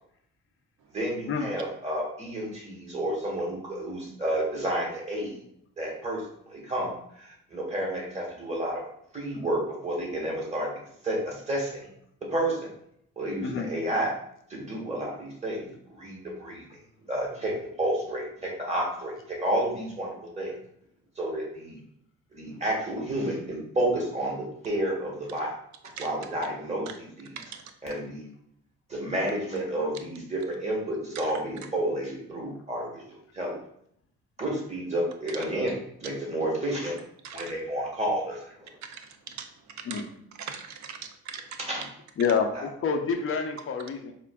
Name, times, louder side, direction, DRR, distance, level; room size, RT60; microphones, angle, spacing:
voice 1, 0.9-5.4 5.8-8.8 9.1-10.7 11.0-11.9 12.3-12.6 13.2-14.1 14.5-15.7 16.0-16.6 17.0-20.6 21.2-21.8 22.3-25.5 26.0-27.3 27.8-28.3 28.9-33.0 33.3-33.6 34.4-35.7 36.0-37.0 37.3-38.8 41.7-41.8 42.5-42.7, right 1 dB, 20° right, -2 dB, 1.3 m, -30 dB
voice 2, 40.4-41.4, right 7 dB, 70° right, 7 dB, 0.5 m, -40 dB
voice 3, 42.2-44.1, left 5 dB, 45° left, 4 dB, 0.5 m, -27 dB
4.3 x 2.4 x 2.2 m, 0.69 s
cardioid pair, 90°, 30 cm